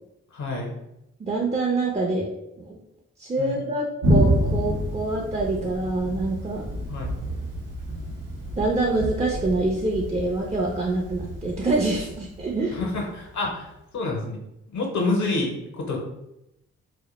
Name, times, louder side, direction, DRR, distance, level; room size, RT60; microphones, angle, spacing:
voice 1, 0.3-0.7 3.4-3.6 6.9-7.1 12.7-14.4 14.7-16.0, left 3 dB, 65° left, 0 dB, 0.6 m, -28 dB
voice 2, 1.2-2.2 2.6-2.8 3.2-6.7 8.6-12.8, right 2 dB, 20° right, -2 dB, 0.5 m, -25 dB
Thunder, 4.0-13.4, equal, 80° right, 0.7 m, -28 dB
2.1 x 2.0 x 2.9 m, 0.86 s
supercardioid pair, 40°, 31 cm